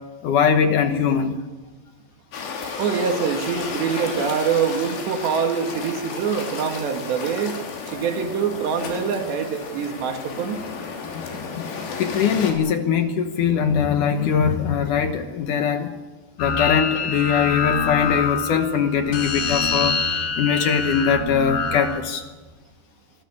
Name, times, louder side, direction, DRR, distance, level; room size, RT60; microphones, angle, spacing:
voice 1, 0.2-1.3 11.5-11.6 12.0-15.9 16.4-20.0 20.4-22.2, left 7 dB, 65° left, 7 dB, 2.2 m, -21 dB
sound 1, 2.3-12.5, left 5 dB, 80° left, 5.3 m, -33 dB
voice 2, 2.8-7.6 7.9-10.6, right 6 dB, 85° right, 5 dB, 4.2 m, -24 dB
sound 2, 16.4-22.0, left 5 dB, 50° left, 2.9 m, -25 dB
25.0 x 14.0 x 9.8 m, 1.3 s
omnidirectional pair, 4.8 m